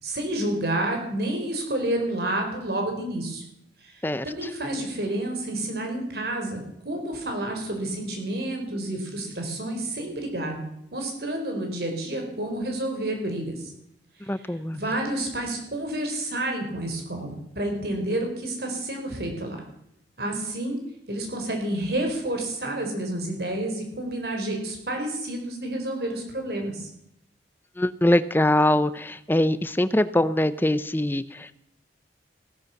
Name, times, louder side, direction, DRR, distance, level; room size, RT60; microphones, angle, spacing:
voice 1, 0.0-3.4 4.2-10.6 10.9-13.7 14.7-19.6 20.2-20.8 21.1-26.9, right 1 dB, 60° right, 3 dB, 4.5 m, -29 dB
voice 2, 4.0-4.5 14.3-14.8 27.8-31.5, left 1 dB, 10° left, 14 dB, 0.6 m, -23 dB
16.0 x 13.5 x 5.9 m, 0.76 s
head